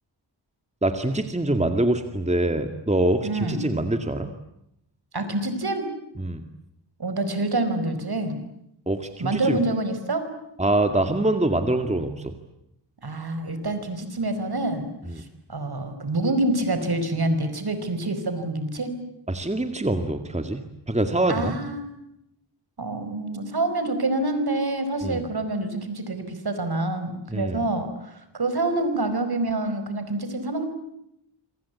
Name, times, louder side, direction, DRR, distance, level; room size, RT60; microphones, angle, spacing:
voice 1, 0.8-4.3 6.2-6.4 8.9-9.6 10.6-12.3 15.1-15.2 19.3-21.6 25.0-25.2 27.3-27.6, right 1 dB, 15° right, 7 dB, 2.1 m, -24 dB
voice 2, 3.2-3.6 5.1-5.9 7.0-8.4 9.2-10.3 13.0-14.9 15.2-15.3 15.5-19.0 21.3-22.0 22.8-30.7, right 2 dB, 55° right, 9 dB, 5.2 m, -27 dB
27.5 x 25.5 x 8.5 m, 0.80 s
wide cardioid pair, 95°, 46 cm